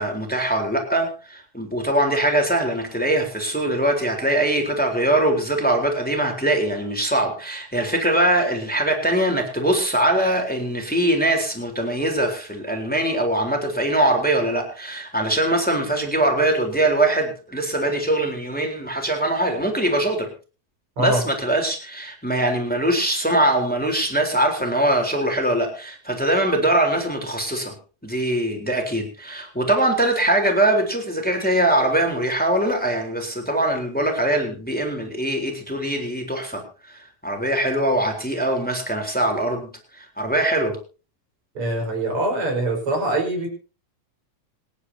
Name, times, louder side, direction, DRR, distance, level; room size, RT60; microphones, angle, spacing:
voice 1, 0.0-20.3 21.0-27.7 28.0-36.6 36.9-39.7 40.0-40.8, right 1 dB, 5° left, 3 dB, 3.7 m, -22 dB
voice 2, 41.6-43.5, right 2 dB, 50° right, 2 dB, 5.8 m, -23 dB
26.0 x 10.5 x 2.8 m, 0.35 s
omnidirectional pair, 3.3 m